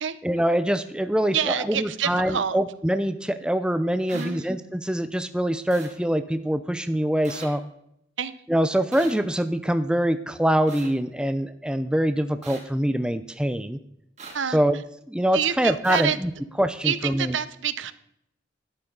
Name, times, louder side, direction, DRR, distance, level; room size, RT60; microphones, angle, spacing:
voice 1, 0.2-7.6 8.5-13.8 14.5-14.8 15.1-16.3 16.6-17.4, equal, 5° right, 11 dB, 0.5 m, -24 dB
voice 2, 1.3-2.6 4.1-4.5 8.2-8.3 14.3-14.6 15.3-16.2 16.8-17.9, right 7 dB, 80° right, 15 dB, 0.8 m, -27 dB
sound 1, 4.1-4.3 5.7-5.9 7.2-7.5 8.9-9.1 10.7-10.9 12.4-12.6 14.2-14.4 15.8-16.0, right 4 dB, 35° right, 3.2 m, -40 dB
12.5 x 11.0 x 3.9 m, 0.77 s
head